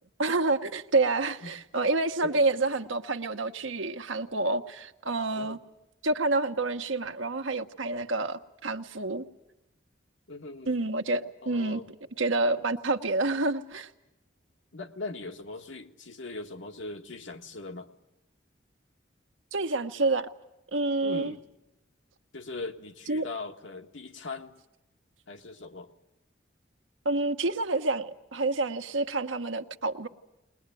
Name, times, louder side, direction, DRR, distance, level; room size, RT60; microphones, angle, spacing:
voice 1, 0.2-5.6 6.0-9.2 10.7-11.8 12.2-13.9 19.5-20.3 20.7-21.3 23.1-23.2 27.0-30.1, right 2 dB, 85° right, 6 dB, 1.2 m, -28 dB
voice 2, 10.3-10.8 11.4-11.8 14.7-17.9 21.0-21.4 22.3-24.6 25.3-25.9, left 3 dB, 80° left, 5 dB, 1.7 m, -40 dB
21.5 x 21.0 x 9.2 m, 0.91 s
head